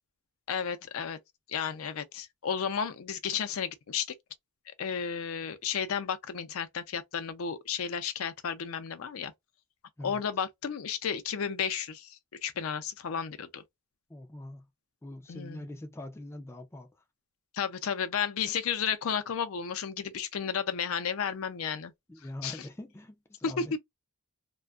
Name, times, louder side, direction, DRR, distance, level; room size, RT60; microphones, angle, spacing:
voice 1, 0.5-1.2 1.5-4.1 4.8-9.3 10.0-13.6 15.3-15.7 17.5-21.9 22.4-22.6 23.4-23.7, left 7 dB, 75° left, 0.5 m, -33 dB
voice 2, 14.1-14.7 15.0-16.9 22.1-23.7, left 1 dB, 10° left, 0.3 m, -43 dB
2.5 x 2.2 x 2.3 m
head